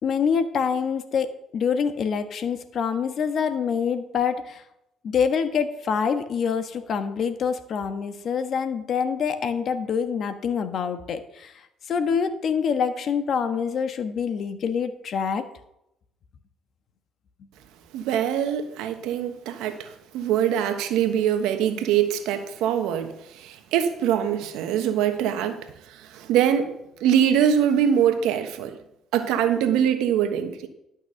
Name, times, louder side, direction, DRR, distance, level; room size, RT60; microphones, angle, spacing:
voice 1, 0.0-4.6 5.0-11.5 11.9-15.5, left 6 dB, 60° left, 9 dB, 1.3 m, -26 dB
voice 2, 17.9-26.7 27.0-28.8 29.1-30.7, right 9 dB, 80° right, 8 dB, 1.2 m, -23 dB
12.0 x 6.2 x 6.5 m, 0.82 s
supercardioid pair, 65°, 0 cm